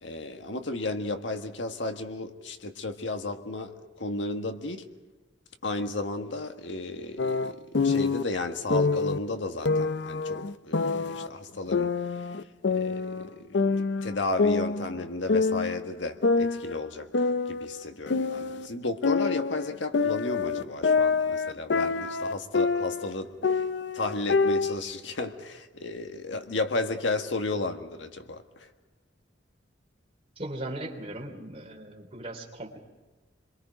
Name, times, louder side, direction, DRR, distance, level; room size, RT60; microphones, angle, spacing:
voice 1, 0.0-4.8 5.6-7.6 7.8-11.9 12.7-23.6 23.9-28.7, left 2 dB, 85° left, 6 dB, 1.6 m, -33 dB
sound 1, 7.2-8.2 8.7-9.2 9.7-11.3 11.7-13.3 13.5-15.0 15.3-15.8 16.2-18.7 19.0-23.1 23.4-24.8, left 4 dB, 70° left, 0.6 m, -26 dB
voice 2, 30.4-32.8, right 1 dB, 35° right, -1 dB, 3.2 m, -38 dB
27.0 x 22.5 x 5.1 m, 1.2 s
head